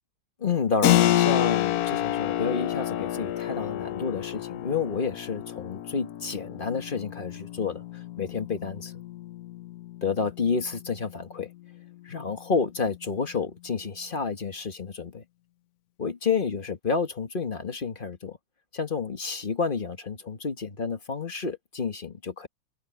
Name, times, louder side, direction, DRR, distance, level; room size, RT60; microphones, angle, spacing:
voice 1, 0.4-7.8 8.2-9.0 10.0-11.5 12.0-15.2 16.0-18.4 18.7-22.5, left 5 dB, 30° left, 1.4 m, -30 dB
Keyboard (musical), 0.8-11.2, left 13 dB, 75° left, 0.8 m, -29 dB
omnidirectional pair, 2.2 m